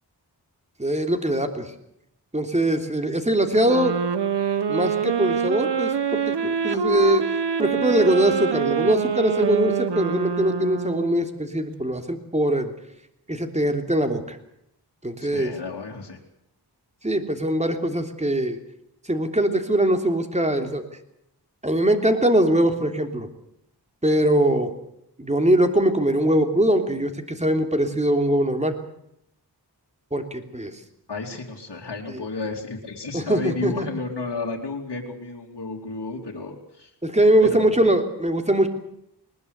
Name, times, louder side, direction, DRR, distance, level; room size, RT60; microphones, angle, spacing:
voice 1, 0.8-1.7 2.3-4.0 4.7-7.3 7.6-12.7 13.3-14.4 15.0-15.5 17.0-18.6 19.1-20.8 21.6-23.3 24.0-24.7 25.2-28.7 30.1-30.7 32.1-32.2 33.1-33.9 37.0-38.7, right 1 dB, 15° right, 5 dB, 3.1 m, -22 dB
sound 1, 3.6-11.3, right 6 dB, 75° right, 1.2 m, -25 dB
voice 2, 15.2-16.2 31.1-36.9 37.4-37.6, left 3 dB, 70° left, -1 dB, 3.0 m, -32 dB
21.0 x 20.5 x 8.2 m, 0.77 s
wide cardioid pair, 75°, 41 cm